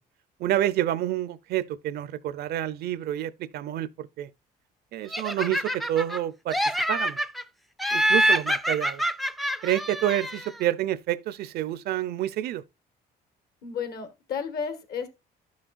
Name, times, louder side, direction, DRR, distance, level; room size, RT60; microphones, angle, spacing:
voice 1, 0.4-4.3 4.9-6.6 6.9-7.2 7.9-9.0 9.6-12.6, right 12 dB, 70° right, 0.6 m, -28 dB
Laughter, 5.1-6.2 6.5-7.4 7.8-10.6, right 1 dB, ahead, 0.4 m, -26 dB
voice 2, 13.6-15.1, left 6 dB, 65° left, 1.7 m, -32 dB
11.5 x 6.3 x 2.5 m
cardioid pair, 110°, 17 cm